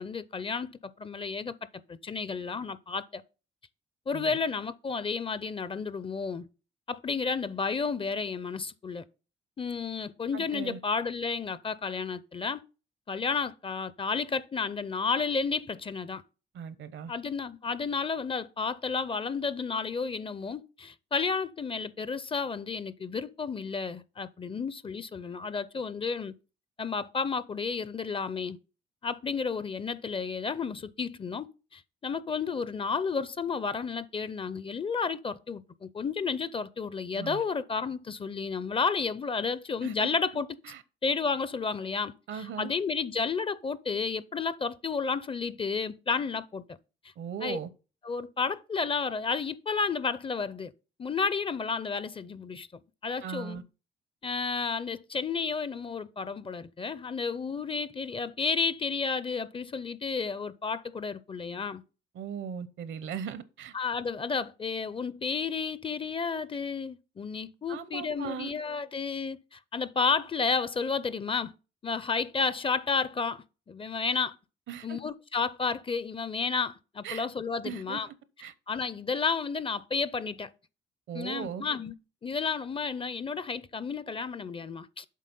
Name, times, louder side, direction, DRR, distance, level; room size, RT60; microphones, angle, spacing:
voice 1, 0.0-1.5 1.9-3.2 4.1-6.5 6.9-9.0 9.6-12.6 13.1-16.2 17.1-26.3 26.8-28.6 29.0-31.5 31.7-40.5 41.0-46.6 47.4-47.6 48.0-50.7 51.0-52.7 53.0-53.6 54.2-61.8 63.7-71.5 71.8-74.3 74.8-78.1 78.7-80.5 81.1-81.9 82.2-85.0, left 5 dB, 25° left, 0.5 m, -32 dB
voice 2, 10.3-10.8 16.5-17.1 37.2-37.4 39.8-40.1 40.7-40.8 42.3-42.7 47.2-47.7 53.2-53.6 62.1-63.7 67.7-68.5 74.7-75.0 77.0-77.3 77.6-78.1 78.4-78.5 81.1-81.6, right 8 dB, 70° right, 0.8 m, -38 dB
7.5 x 4.0 x 5.3 m
cardioid pair, 90°, 20 cm